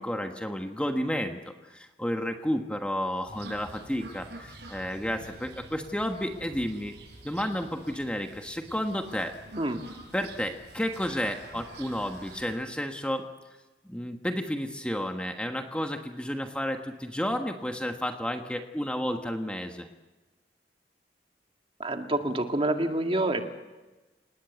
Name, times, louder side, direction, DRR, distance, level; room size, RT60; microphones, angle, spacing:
voice 1, 0.0-6.9 7.2-9.3 10.1-13.3 13.8-19.9, equal, 5° left, 4 dB, 1.3 m, -31 dB
sound 1, 3.3-12.5, right 2 dB, 70° right, 7.5 m, -47 dB
voice 2, 21.8-23.4, right 1 dB, 30° right, 4 dB, 2.1 m, -27 dB
29.0 x 19.0 x 8.2 m, 1.2 s
head